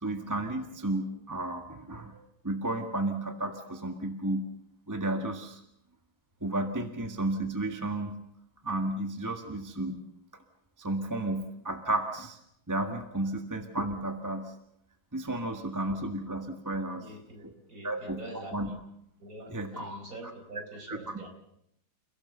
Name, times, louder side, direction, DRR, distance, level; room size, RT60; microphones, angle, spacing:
voice 1, 0.0-4.5 4.9-5.6 6.4-8.2 8.6-10.0 10.8-12.4 12.7-14.5 15.1-17.1 17.4-17.5 17.8-18.7 19.5-20.0 20.2-20.3 20.9-21.2, right 2 dB, 10° right, 5 dB, 1.5 m, -33 dB
voice 2, 17.0-17.4 17.7-18.8 19.2-21.3, right 1 dB, 45° right, 3 dB, 4.9 m, -45 dB
29.5 x 17.0 x 6.8 m, 0.76 s
omnidirectional pair, 2.1 m